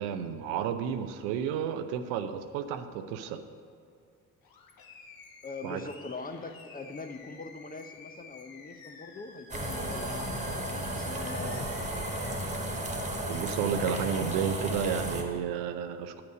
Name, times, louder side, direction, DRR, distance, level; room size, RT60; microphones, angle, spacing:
voice 1, 0.0-3.4 5.6-5.8 13.3-16.2, right 8 dB, 70° right, 9 dB, 0.6 m, -32 dB
Animal, 4.4-12.4, left 4 dB, 55° left, 1.2 m, -51 dB
voice 2, 5.4-12.3, left 3 dB, 20° left, 7 dB, 0.7 m, -42 dB
sound 1, 9.5-15.2, right 1 dB, 15° right, 1.5 m, -34 dB
9.0 x 5.8 x 6.3 m, 2.4 s
figure-of-eight pair, 45°, 42 cm